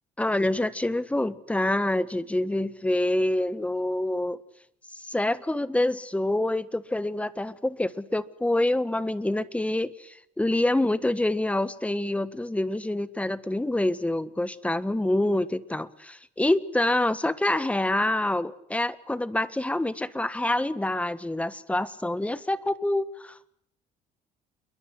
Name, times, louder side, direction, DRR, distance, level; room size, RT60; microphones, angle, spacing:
voice 1, 0.2-4.4 5.0-23.5, left 1 dB, 10° left, 14 dB, 1.5 m, -26 dB
29.0 x 22.0 x 8.1 m, 0.68 s
cardioid pair, 110°, 17 cm